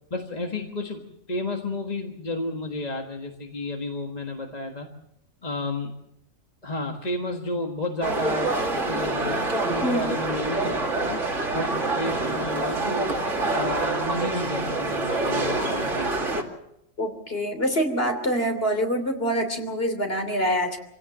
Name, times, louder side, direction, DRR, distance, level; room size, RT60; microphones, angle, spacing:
voice 1, 0.1-1.0 1.3-4.9 5.4-5.9 6.6-11.2 11.5-16.3, left 2 dB, 30° left, 2 dB, 1.7 m, -31 dB
sound 1, 8.0-16.4, right 2 dB, 65° right, 2.8 m, -26 dB
voice 2, 9.8-10.1 17.0-20.8, equal, 45° left, 6 dB, 3.3 m, -25 dB
26.0 x 17.0 x 7.5 m, 0.83 s
omnidirectional pair, 1.4 m